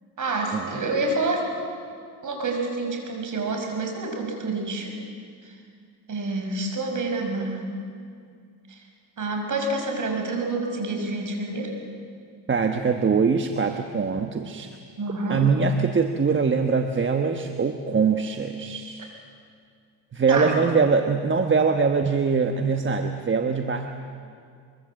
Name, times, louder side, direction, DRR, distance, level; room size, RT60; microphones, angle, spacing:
voice 1, 0.2-1.5 2.2-4.9 6.1-7.6 9.2-11.7 15.0-15.4 20.3-20.5, right 2 dB, 40° right, 2 dB, 6.0 m, -28 dB
voice 2, 12.5-14.7 15.3-19.1 20.1-23.9, right 5 dB, 25° right, 5 dB, 1.2 m, -23 dB
24.0 x 23.5 x 7.7 m, 2.2 s
cardioid pair, 105°, 46 cm